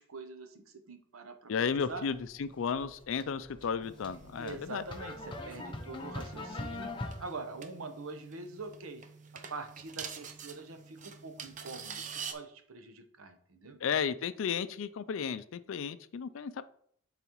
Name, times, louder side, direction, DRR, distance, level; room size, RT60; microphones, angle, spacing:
voice 1, 0.0-2.1 4.4-9.0 9.3-13.8, right 3 dB, 85° right, 8 dB, 0.8 m, -44 dB
voice 2, 1.5-4.8 13.8-16.6, left 6 dB, 65° left, 14 dB, 0.4 m, -33 dB
sound 1, 1.7-7.2, left 2 dB, 25° left, 0.7 m, -43 dB
sound 2, 3.8-12.3, right 6 dB, 35° right, 0.5 m, -47 dB
10.5 x 4.0 x 3.0 m, 0.66 s
head